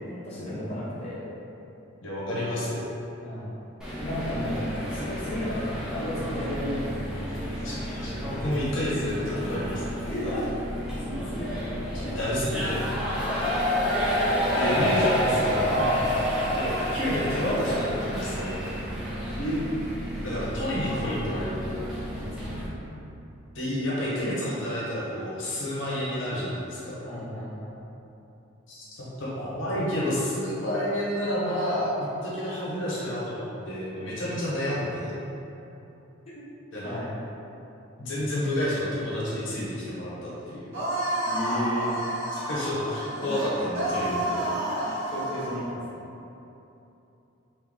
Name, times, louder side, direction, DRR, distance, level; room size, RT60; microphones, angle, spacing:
voice 1, 0.1-1.3 3.2-3.4 4.0-4.6 4.9-7.2 10.0-10.5 11.0-11.6 12.0-12.3 13.3-13.4 14.6-15.0 15.7-16.0 19.4-19.6 20.8-21.0 22.1-22.5 27.0-27.7 36.8-37.1 41.3-42.0 45.1-45.8, equal, 30° left, -10 dB, 0.9 m, -33 dB
voice 2, 2.0-2.8 7.6-10.0 11.9-12.8 14.5-15.7 16.5-18.6 20.2-21.8 23.5-27.0 28.7-35.1 36.7-37.0 38.0-40.6 42.3-44.4, left 1 dB, 65° left, -7 dB, 0.9 m, -30 dB
sound 1, 3.8-22.7, equal, 5° right, 0.7 m, -30 dB
sound 2, 40.7-45.6, right 1 dB, 65° right, 1.4 m, -30 dB
3.5 x 2.7 x 3.8 m, 2.9 s
head